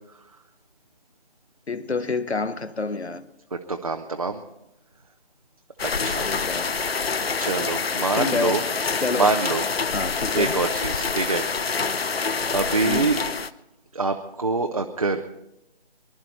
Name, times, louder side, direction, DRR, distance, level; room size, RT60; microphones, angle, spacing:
voice 1, 1.7-3.3 6.2-6.8 8.2-8.6 9.0-9.3 9.9-10.6 12.8-13.1, left 3 dB, 80° left, 1.2 m, -28 dB
voice 2, 3.7-4.4 5.8-6.3 7.4-8.6 9.2-9.6 10.3-11.4 12.5-13.2 13.9-15.2, right 3 dB, 35° right, 0.7 m, -25 dB
sound 1, 5.8-13.5, left 5 dB, 65° left, 0.8 m, -26 dB
23.5 x 11.5 x 4.3 m
figure-of-eight pair, 160°, 33 cm